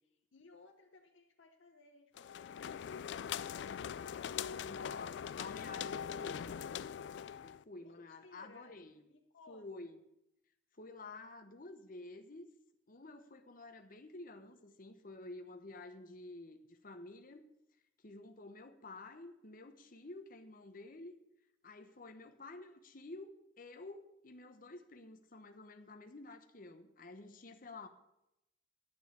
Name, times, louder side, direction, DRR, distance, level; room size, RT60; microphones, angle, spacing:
voice 1, 0.3-4.7 7.8-9.9, left 3 dB, 90° left, 3 dB, 0.8 m, -62 dB
sound 1, 2.2-7.6, left 8 dB, 65° left, 0.3 m, -42 dB
voice 2, 4.6-6.6 7.4-9.0 9.5-10.0 10.7-12.5 12.9-17.5 18.0-21.1 21.6-27.9, left 2 dB, 45° left, 7 dB, 1.0 m, -51 dB
11.5 x 7.0 x 6.6 m, 0.86 s
head